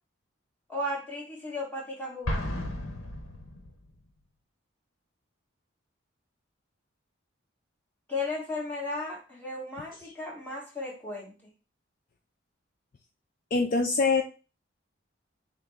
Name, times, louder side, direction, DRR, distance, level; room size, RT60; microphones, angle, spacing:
voice 1, 0.7-2.6 8.1-11.3, left 2 dB, 10° left, -4 dB, 1.4 m, -35 dB
Explosion, 2.3-4.0, left 1 dB, 80° left, 0.9 m, -34 dB
voice 2, 13.5-14.2, left 4 dB, 45° left, 3 dB, 0.3 m, -24 dB
6.2 x 2.1 x 3.5 m, 0.34 s
head